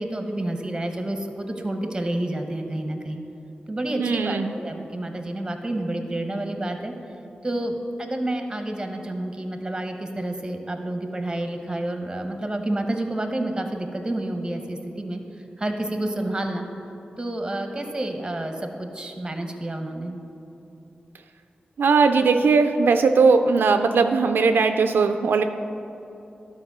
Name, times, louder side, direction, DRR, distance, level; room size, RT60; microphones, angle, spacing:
voice 1, 0.0-3.2 3.7-6.9 7.4-15.2 15.6-16.7 17.2-20.1, right 1 dB, 20° right, 5 dB, 1.0 m, -29 dB
voice 2, 4.0-4.5 21.8-25.4, right 4 dB, 85° right, 7 dB, 0.3 m, -19 dB
11.5 x 4.3 x 6.0 m, 2.9 s
cardioid pair, 65°, 3 cm